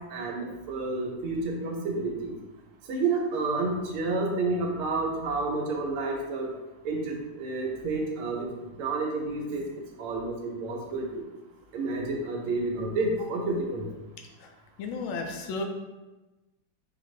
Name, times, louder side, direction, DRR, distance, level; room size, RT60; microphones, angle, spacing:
voice 1, 0.0-2.3 2.9-6.5 6.8-8.5 8.8-9.6 10.0-11.0 11.7-13.8, right 3 dB, 80° right, 1 dB, 1.6 m, -30 dB
voice 2, 14.8-15.6, left 3 dB, 75° left, 3 dB, 1.3 m, -32 dB
4.7 x 2.5 x 3.1 m, 1.1 s
omnidirectional pair, 2.4 m